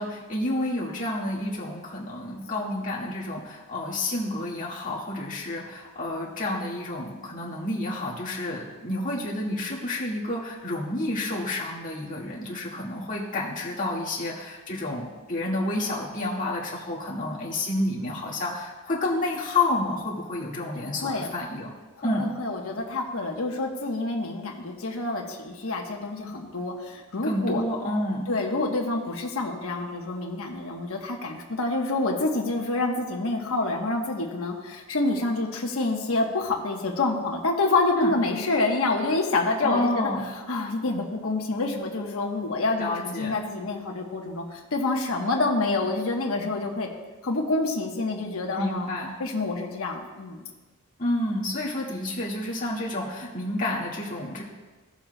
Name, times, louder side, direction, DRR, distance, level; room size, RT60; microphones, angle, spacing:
voice 1, 0.0-21.7 22.0-22.3 27.2-28.2 38.0-38.1 39.6-40.2 42.8-43.4 48.5-49.1 51.0-54.4, left 1 dB, 40° left, -5 dB, 1.8 m, -29 dB
voice 2, 21.0-21.4 22.0-27.6 28.3-46.9 47.2-48.9 49.2-50.5, left 2 dB, 80° left, 1 dB, 1.1 m, -27 dB
15.0 x 7.2 x 2.2 m, 1.2 s
head